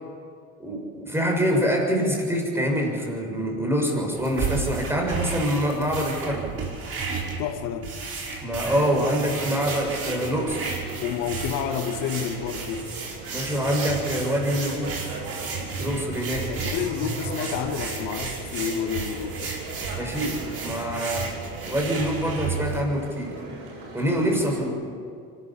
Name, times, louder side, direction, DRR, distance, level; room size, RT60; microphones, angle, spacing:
voice 1, 0.6-6.5 8.4-10.7 13.3-15.0 15.8-16.5 20.0-21.3 21.7-23.4 23.9-24.8, equal, 5° right, 0 dB, 6.6 m, -25 dB
sound 1, 4.2-22.8, right 4 dB, 45° right, 5.6 m, -33 dB
voice 2, 7.4-7.9 11.0-12.9 16.5-19.5, left 8 dB, 75° left, 7 dB, 1.5 m, -29 dB
sound 2, 8.5-24.7, right 3 dB, 75° right, 7.4 m, -39 dB
24.5 x 13.5 x 8.6 m, 2.2 s
supercardioid pair, 95°, 33 cm